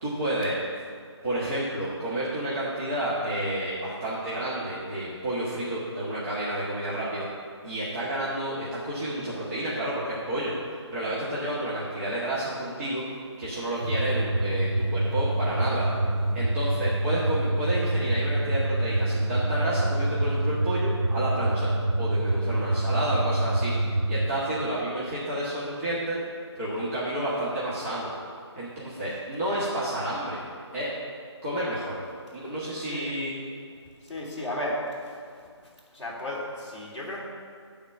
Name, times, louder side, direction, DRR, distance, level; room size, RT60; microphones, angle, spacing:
voice 1, 0.0-0.6 1.2-7.3 7.6-10.5 10.9-13.1 13.4-15.9 16.3-21.7 22.0-23.7 24.1-26.2 26.6-28.1 28.6-30.4 30.7-30.9 31.4-32.0 32.3-33.4, right 1 dB, 30° right, -9 dB, 1.7 m, -30 dB
sound 1, 13.8-24.3, right 1 dB, 55° right, 1.4 m, -26 dB
voice 2, 32.8-33.1 34.0-35.5 35.9-37.2, left 1 dB, ahead, -12 dB, 1.9 m, -34 dB
9.8 x 4.4 x 7.6 m, 2.1 s
figure-of-eight pair, 160°, 15 cm